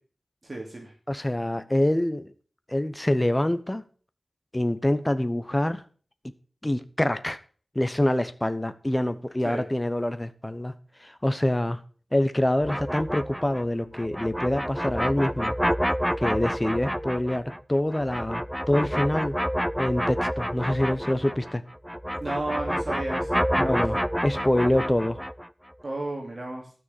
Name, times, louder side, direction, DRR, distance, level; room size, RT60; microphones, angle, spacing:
voice 1, 0.4-0.9 9.4-9.6 22.2-23.8 25.8-26.7, right 2 dB, 40° right, 2.6 m, -33 dB
voice 2, 1.1-2.3 2.7-3.8 4.5-5.8 6.6-7.4 7.7-10.7 11.0-11.8 12.1-15.5 16.2-19.4 19.8-21.6 23.6-24.0 24.2-25.2, left 1 dB, 15° left, 1.0 m, -25 dB
sound 1, 12.6-21.6 21.8-25.5, equal, ahead, 0.4 m, -29 dB
13.0 x 6.3 x 6.9 m
wide cardioid pair, 85°, 0 cm